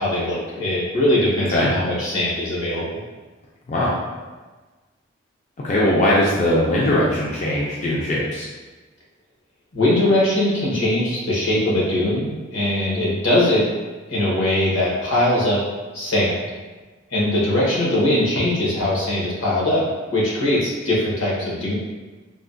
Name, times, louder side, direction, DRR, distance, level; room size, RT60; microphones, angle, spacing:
voice 1, 0.0-3.0 9.7-13.7 14.1-15.6 15.9-16.5 17.1-19.8 20.1-21.7, left 1 dB, 75° left, -6 dB, 1.0 m, -21 dB
voice 2, 5.6-8.4, left 1 dB, 35° left, -6 dB, 0.4 m, -20 dB
3.4 x 2.1 x 2.5 m, 1.3 s
head